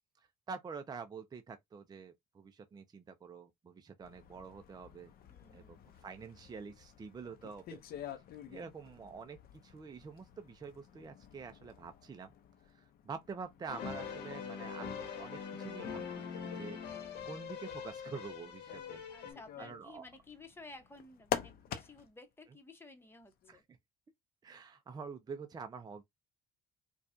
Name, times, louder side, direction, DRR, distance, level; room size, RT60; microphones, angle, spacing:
voice 1, 0.2-5.1 5.5-7.8 8.5-12.3 12.7-16.8 17.2-20.0 23.5-23.6 24.4-26.0, right 5 dB, 25° right, 0.5 m, -47 dB
sound 1, 4.0-22.2 23.2-23.6, left 10 dB, 65° left, 0.7 m, -48 dB
voice 2, 5.3-5.9 19.1-23.6, left 3 dB, 15° left, 1.0 m, -54 dB
sound 2, 13.7-19.3, left 6 dB, 85° left, 1.3 m, -43 dB
4.6 x 2.3 x 2.6 m
cardioid pair, 110°, 17 cm